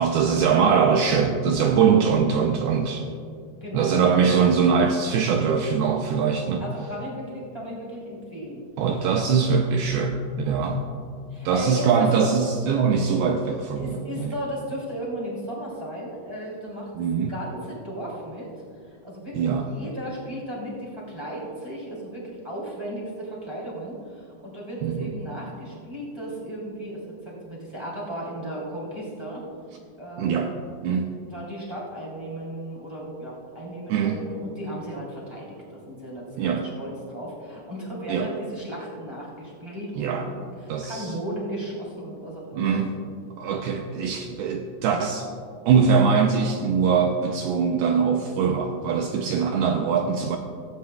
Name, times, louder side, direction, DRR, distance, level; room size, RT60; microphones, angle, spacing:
voice 1, 0.0-3.0 3.7-6.6 8.8-10.9 11.5-14.3 17.0-17.3 19.4-19.7 24.8-25.1 30.2-30.6 30.8-31.1 33.9-34.2 36.4-36.7 38.1-38.4 40.0-40.3 40.7-41.1 42.5-43.0 43.4-45.3 45.7-50.4, right 6 dB, 85° right, 4 dB, 2.2 m, -22 dB
voice 2, 3.5-4.1 6.6-8.6 11.3-12.4 13.8-18.5 18.9-29.4 30.0-30.7 31.3-40.3 40.6-42.8, equal, 10° right, -6 dB, 2.3 m, -35 dB
17.0 x 15.0 x 2.3 m, 2.3 s
omnidirectional pair, 5.1 m